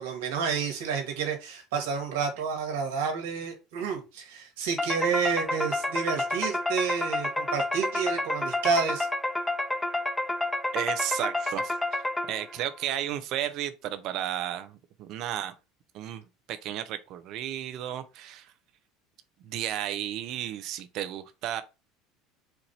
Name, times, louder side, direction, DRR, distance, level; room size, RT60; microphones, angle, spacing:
voice 1, 0.0-9.1, right 6 dB, 80° right, 1.6 m, -30 dB
sound 1, 4.8-12.6, left 2 dB, 10° left, 0.6 m, -30 dB
voice 2, 10.7-12.0 12.3-15.5 15.9-18.5 19.4-21.6, right 11 dB, 60° right, 0.7 m, -33 dB
4.5 x 2.6 x 4.3 m
hypercardioid pair, 85°, 0 cm